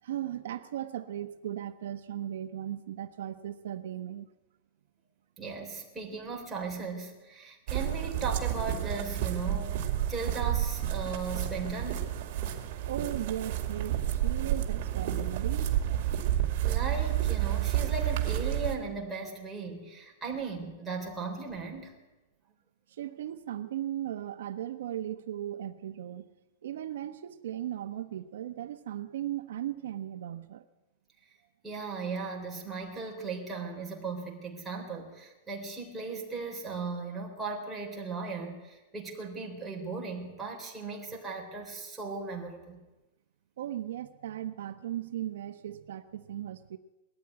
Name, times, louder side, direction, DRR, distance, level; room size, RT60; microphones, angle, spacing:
voice 1, 0.0-4.3 12.9-15.8 22.9-26.3 26.6-30.6 43.6-46.8, right 11 dB, 75° right, 10 dB, 1.0 m, -37 dB
voice 2, 5.4-12.1 16.6-21.9 31.6-42.8, right 4 dB, 5° right, -2 dB, 3.5 m, -37 dB
sound 1, 7.7-18.7, right 12 dB, 40° right, 2.4 m, -30 dB
20.0 x 13.5 x 9.6 m, 1.1 s
supercardioid pair, 175°, 0 cm